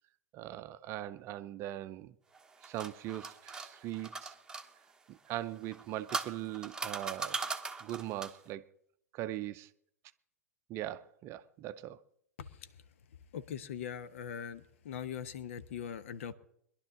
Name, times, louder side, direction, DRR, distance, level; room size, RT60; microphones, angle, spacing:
voice 1, 0.3-2.1 2.6-4.3 5.1-7.4 7.8-8.6 9.1-9.7 10.7-12.0, right 13 dB, 30° right, 0.6 m, -40 dB
sound 1, 2.3-4.7 5.6-8.5, right 4 dB, 10° right, 1.1 m, -39 dB
voice 2, 12.4-12.7 13.3-16.3, left 8 dB, 55° left, 1.0 m, -41 dB
21.5 x 11.5 x 3.8 m
figure-of-eight pair, 95°, 8 cm